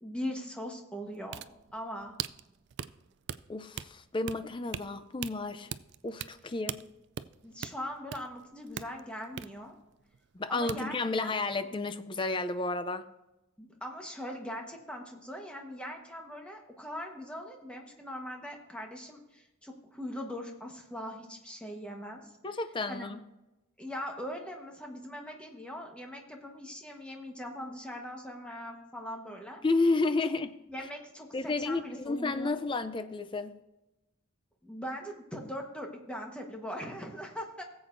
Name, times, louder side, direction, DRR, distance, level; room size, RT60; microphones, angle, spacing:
voice 1, 0.0-1.4 1.7-2.1 7.4-9.7 10.5-11.3 13.6-22.3 22.9-23.1 23.8-29.6 30.7-32.6 34.6-37.6, equal, 5° left, 2 dB, 1.2 m, -41 dB
sound 1, 1.1-10.4 10.7-10.8, right 9 dB, 50° right, 0.3 m, -41 dB
voice 2, 3.5-5.7 6.0-6.8 10.3-13.0 22.4-23.2 29.6-30.5 31.3-33.6, left 3 dB, 25° left, 10 dB, 0.5 m, -31 dB
17.5 x 7.9 x 2.6 m, 0.99 s
head